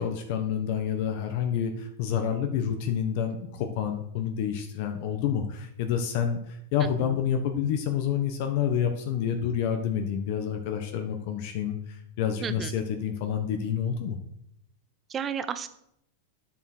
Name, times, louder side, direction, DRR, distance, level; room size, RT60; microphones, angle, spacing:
voice 1, 0.0-14.2, left 8 dB, 50° left, 5 dB, 1.3 m, -28 dB
voice 2, 15.1-15.7, right 7 dB, 20° right, 12 dB, 0.8 m, -32 dB
10.0 x 7.9 x 6.2 m, 0.74 s
supercardioid pair, 155°, 0 cm